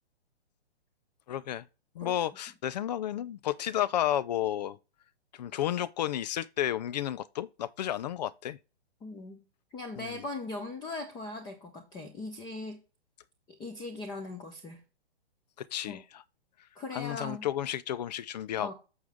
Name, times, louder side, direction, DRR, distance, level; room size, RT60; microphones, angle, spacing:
voice 1, 1.3-1.7 1.9-4.8 5.3-8.6 10.0-10.2 15.6-16.2 16.9-18.7, left 11 dB, 40° left, 0.4 m, -32 dB
voice 2, 9.0-9.4 9.7-12.8 13.5-14.8 15.9-16.0 16.7-17.5 18.6-18.7, left 2 dB, 15° left, 0.8 m, -39 dB
6.4 x 6.2 x 3.5 m
hypercardioid pair, 145°, 32 cm